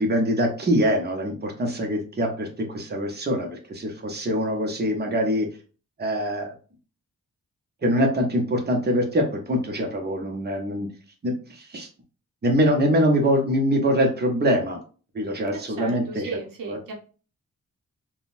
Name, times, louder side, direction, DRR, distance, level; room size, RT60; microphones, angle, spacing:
voice 1, 0.0-5.5 6.0-6.5 7.8-10.9 11.2-11.9 12.4-14.8 15.1-16.4 16.6-16.8, equal, 30° right, 2 dB, 0.8 m, -24 dB
voice 2, 15.5-16.9, right 4 dB, 90° right, 2 dB, 0.8 m, -36 dB
3.7 x 2.3 x 2.5 m, 0.37 s
wide cardioid pair, 100°, 32 cm